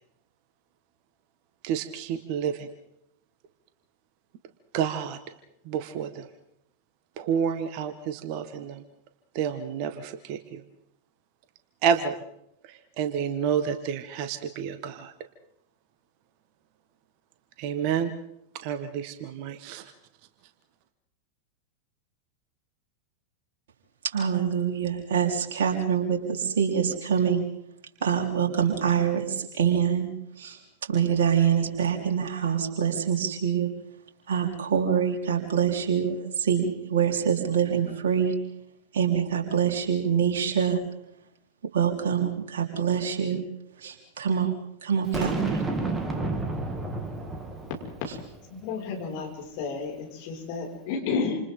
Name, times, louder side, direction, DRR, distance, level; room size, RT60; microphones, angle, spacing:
voice 1, 1.6-2.7 4.7-5.2 5.7-6.3 7.2-8.8 9.4-10.6 11.8-12.2 13.0-15.1 17.6-18.1 18.6-19.8, right 8 dB, 45° right, 10 dB, 1.6 m, -29 dB
voice 2, 24.1-27.4 28.0-30.1 30.4-30.6 30.9-33.7 34.3-38.3 38.9-40.8 41.7-43.4 43.8-44.5 44.8-45.6, right 8 dB, 60° right, 1 dB, 4.2 m, -25 dB
Boom, 45.1-48.4, right 2 dB, 15° right, 2.7 m, -30 dB
voice 3, 48.5-51.4, left 5 dB, 50° left, 0 dB, 6.2 m, -31 dB
29.0 x 28.0 x 3.9 m, 0.78 s
figure-of-eight pair, 90°, 0 cm